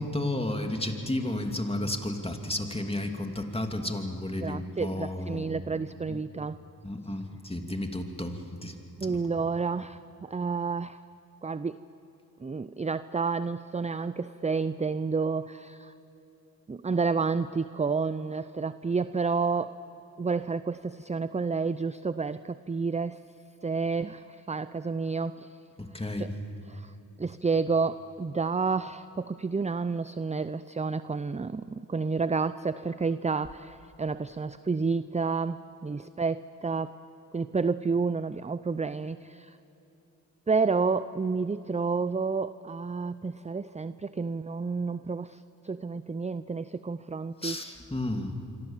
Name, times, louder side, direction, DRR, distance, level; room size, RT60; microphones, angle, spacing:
voice 1, 0.0-5.6 6.1-6.2 6.8-8.7 9.0-9.2 25.8-26.3 47.4-48.3, left 1 dB, 15° left, 4 dB, 2.7 m, -32 dB
voice 2, 4.4-6.6 9.0-11.0 11.4-11.8 12.4-15.9 16.7-19.8 20.2-23.2 23.6-25.5 26.2-26.3 26.7-26.9 27.2-37.0 37.3-39.6 40.5-45.4 45.6-47.6, right 4 dB, 20° right, 14 dB, 0.5 m, -30 dB
26.5 x 24.5 x 7.4 m, 3.0 s
cardioid pair, 55°, 38 cm